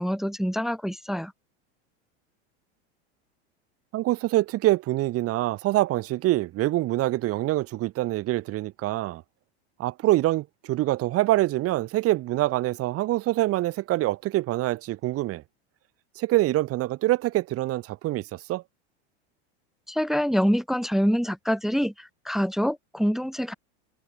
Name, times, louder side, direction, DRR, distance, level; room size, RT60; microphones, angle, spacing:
voice 1, 0.0-1.3 19.9-23.5, equal, ahead, 0.5 m, -25 dB
voice 2, 3.9-9.2 9.8-15.4 16.2-18.6, right 16 dB, 45° right, 3.6 m, -25 dB
supercardioid pair, 125°, 33 cm